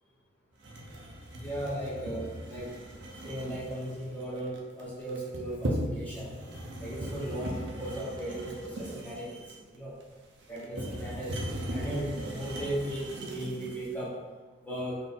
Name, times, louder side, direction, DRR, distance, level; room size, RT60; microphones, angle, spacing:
sound 1, 0.6-13.9, right 1 dB, 60° right, 0.6 m, -38 dB
voice 1, 1.4-2.7 3.2-6.3 6.8-9.3 9.7-10.0 10.5-14.2 14.6-15.0, right 1 dB, 10° left, -7 dB, 0.9 m, -36 dB
4.2 x 2.6 x 3.6 m, 1.4 s
head